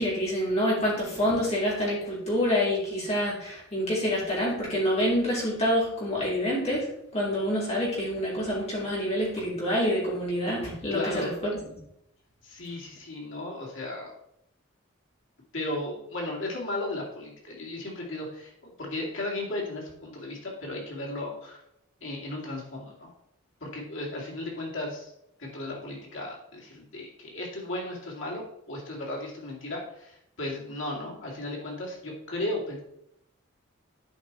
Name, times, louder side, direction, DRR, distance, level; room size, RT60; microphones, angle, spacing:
voice 1, 0.0-6.9 7.1-11.0 11.4-11.5, equal, 30° left, -6 dB, 3.2 m, -27 dB
voice 2, 10.9-11.4 12.4-14.1 15.5-21.6 22.0-23.1 23.6-25.1 25.4-32.8, left 1 dB, 65° left, -3 dB, 2.6 m, -35 dB
10.5 x 5.0 x 4.1 m, 0.76 s
head